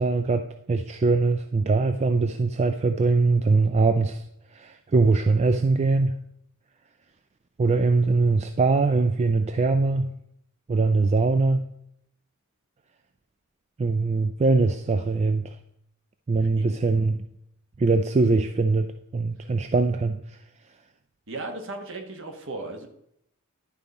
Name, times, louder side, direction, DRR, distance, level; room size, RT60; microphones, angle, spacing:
voice 1, 0.0-4.2 4.5-6.2 7.6-10.1 10.7-11.7 13.8-15.6 16.3-17.3 17.8-20.4, right 3 dB, 30° right, 8 dB, 0.3 m, -22 dB
voice 2, 21.3-22.9, right 2 dB, 55° right, 5 dB, 1.2 m, -36 dB
11.0 x 4.1 x 5.1 m, 0.76 s
head